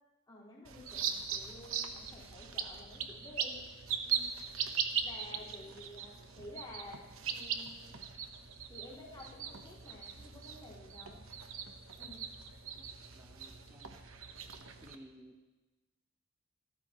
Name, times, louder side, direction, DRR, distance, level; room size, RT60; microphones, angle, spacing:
voice 1, 0.3-3.6 4.0-4.3 5.0-7.0 7.3-7.9 8.7-11.2 12.0-12.3, left 1 dB, 20° left, -7 dB, 4.8 m, -52 dB
sound 1, 0.6-14.9, right 7 dB, 65° right, 1.1 m, -40 dB
voice 2, 13.1-14.0 14.8-15.4, equal, 10° right, 0 dB, 1.0 m, -56 dB
27.0 x 13.5 x 3.1 m, 1.1 s
head